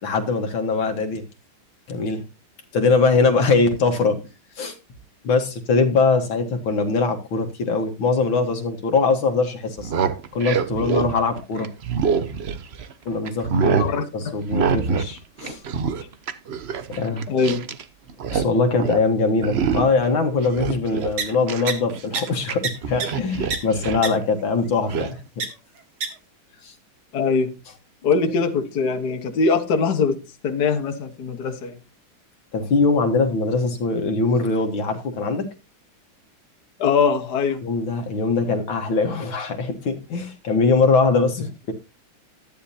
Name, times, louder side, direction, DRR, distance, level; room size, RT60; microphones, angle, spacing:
voice 1, 0.0-1.2 1.9-2.2 2.7-4.2 4.6-4.8 5.2-9.9 10.3-11.7 13.1-13.9 14.1-15.6 16.9-17.3 18.3-25.4 26.6-26.7 32.5-35.5 37.6-41.7, left 4 dB, 75° left, 2.2 m, -22 dB
sound 1, 9.7-12.9 13.3-13.9 14.5-15.1 15.4-17.8 18.1-18.5 18.8-19.0 19.4-20.0 20.4-22.5 22.8-24.1 24.9-25.1, right 6 dB, 65° right, 0.6 m, -25 dB
voice 2, 13.7-14.4 17.3-17.7 27.1-27.5 28.0-30.2 30.4-31.8 36.8-37.6, left 5 dB, 55° left, 1.8 m, -22 dB
sound 2, 21.2-21.3 21.7-21.8 22.1-22.2 22.6-22.7 23.0-23.1 23.5-23.6 24.0-24.1 25.4-25.5 26.0-26.1, right 5 dB, 85° right, 2.7 m, -24 dB
13.0 x 10.5 x 2.8 m
omnidirectional pair, 2.2 m